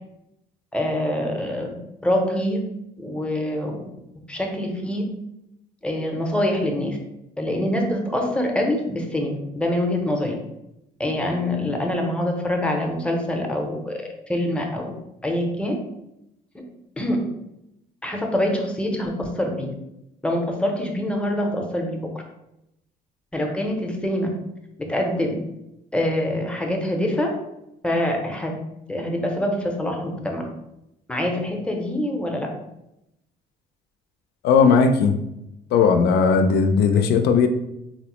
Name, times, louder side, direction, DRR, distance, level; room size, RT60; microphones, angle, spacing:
voice 1, 0.7-1.8 2.0-2.6 3.0-3.9 4.3-5.1 5.8-7.0 7.4-10.4 11.0-14.9 15.2-15.8 16.5-16.6 17.0-17.3 18.0-19.8 20.2-22.1 23.3-24.4 24.8-25.4 25.9-27.4 27.8-28.6 28.9-30.5 31.1-32.5, left 1 dB, 5° left, 2 dB, 0.6 m, -25 dB
voice 2, 34.4-35.2 35.7-37.5, left 5 dB, 75° left, 7 dB, 0.4 m, -17 dB
4.0 x 2.0 x 3.0 m, 0.85 s
cardioid pair, 110°, 17 cm